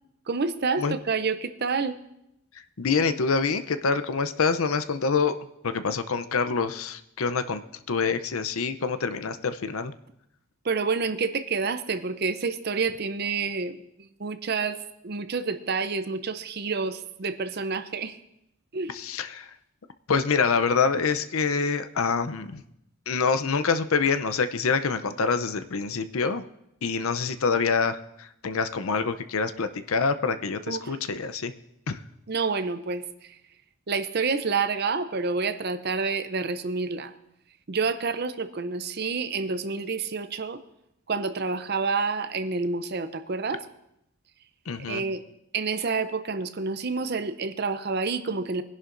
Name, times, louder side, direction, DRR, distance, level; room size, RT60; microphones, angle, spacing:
voice 1, 0.3-2.0 10.6-18.2 18.7-18.9 30.7-31.0 32.3-33.4 33.9-37.2 37.7-40.6 41.1-43.7 44.9-45.2 45.5-48.6, right 4 dB, 45° right, 10 dB, 0.6 m, -28 dB
voice 2, 2.8-5.4 5.6-7.6 7.9-9.9 18.9-19.5 20.1-22.6 23.1-26.4 26.8-31.5 31.9-32.0 44.7-45.0, left 5 dB, 70° left, 11 dB, 0.6 m, -26 dB
22.0 x 11.0 x 2.6 m, 0.81 s
head